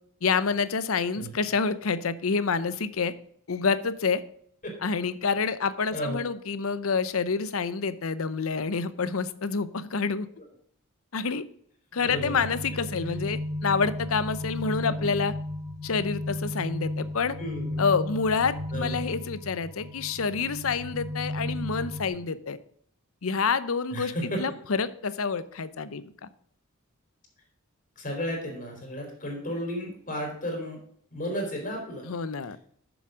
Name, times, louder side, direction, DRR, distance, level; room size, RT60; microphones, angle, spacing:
voice 1, 0.2-3.1 3.5-4.2 4.8-10.3 11.1-11.4 11.9-15.3 15.8-17.4 17.8-22.6 23.2-26.3 32.0-32.6, left 5 dB, 80° left, 14 dB, 0.7 m, -28 dB
voice 2, 5.9-6.2 11.9-12.4 14.8-14.9 17.4-17.8 18.7-19.0 23.9-24.4 27.9-30.8 31.1-32.1, equal, 40° left, 1 dB, 3.5 m, -33 dB
sound 1, 12.1-22.1, left 1 dB, 15° right, 1.5 m, -34 dB
7.2 x 7.1 x 6.2 m, 0.65 s
head